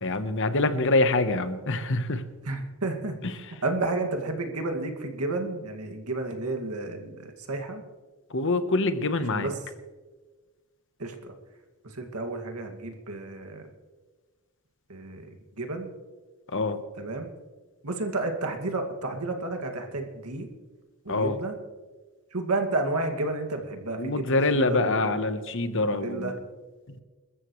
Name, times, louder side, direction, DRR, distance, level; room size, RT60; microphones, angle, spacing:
voice 1, 0.0-2.2 8.3-9.5 16.5-16.8 21.1-21.4 24.0-26.3, left 2 dB, 60° left, 10 dB, 1.1 m, -25 dB
voice 2, 2.4-3.2 3.6-7.8 9.3-9.5 11.0-11.3 11.8-13.6 14.9-15.3 15.6-15.9 17.0-17.3 17.8-20.5 21.0-21.5 22.3-25.2 25.7-26.3, right 2 dB, 90° right, 4 dB, 2.3 m, -31 dB
27.0 x 14.0 x 3.2 m, 1.3 s
head